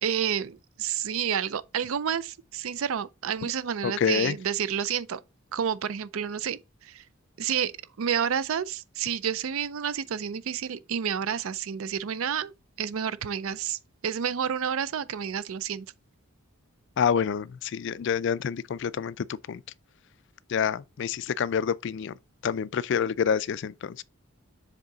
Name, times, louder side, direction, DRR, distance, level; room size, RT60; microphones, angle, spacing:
voice 1, 0.0-5.2 5.5-7.0 7.4-7.7 8.0-12.5 12.8-15.9, right 8 dB, 70° right, 0.4 m, -30 dB
voice 2, 3.8-4.4 17.0-19.6 20.5-22.1 22.4-24.0, left 7 dB, 55° left, 0.3 m, -27 dB
7.4 x 3.6 x 3.9 m
head